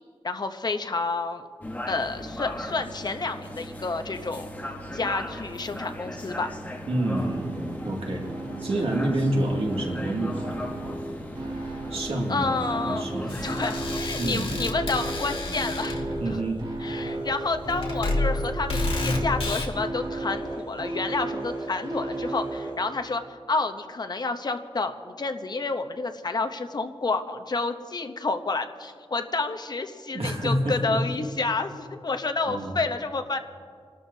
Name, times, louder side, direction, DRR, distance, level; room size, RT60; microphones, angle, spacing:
voice 1, 0.2-1.5 1.9-4.5 4.9-6.5 11.7-11.8 12.3-13.1 13.4-16.0 16.8-33.4, left 3 dB, 45° left, 7 dB, 0.8 m, -29 dB
sound 1, 1.6-14.0, left 1 dB, 15° left, 1.3 m, -38 dB
voice 2, 6.9-8.2 8.6-10.5 11.9-12.5 12.8-13.5 14.2-14.5 16.2-16.6 30.1-31.0 32.5-32.7, right 1 dB, 85° right, -1 dB, 2.4 m, -28 dB
sound 2, 7.2-22.7, right 2 dB, 55° right, 4.9 m, -34 dB
sound 3, 13.3-19.7, left 2 dB, 70° left, 2.2 m, -30 dB
29.5 x 13.0 x 2.8 m, 2.1 s
wide cardioid pair, 120°, 10 cm